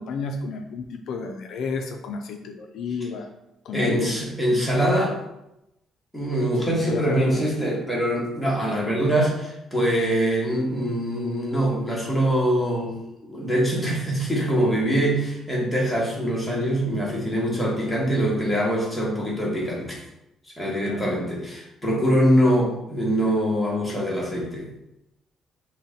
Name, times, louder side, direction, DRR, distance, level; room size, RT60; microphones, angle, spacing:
voice 1, 0.0-3.3 3.6-4.1 6.6-7.4 17.6-18.0 20.7-21.1 23.9-24.1, left 4 dB, 65° left, 4 dB, 0.3 m, -31 dB
voice 2, 3.7-5.2 6.1-12.9 13.2-20.0 20.6-24.7, equal, ahead, -5 dB, 1.0 m, -23 dB
3.9 x 2.1 x 3.6 m, 0.87 s
cardioid pair, 150°, 0 cm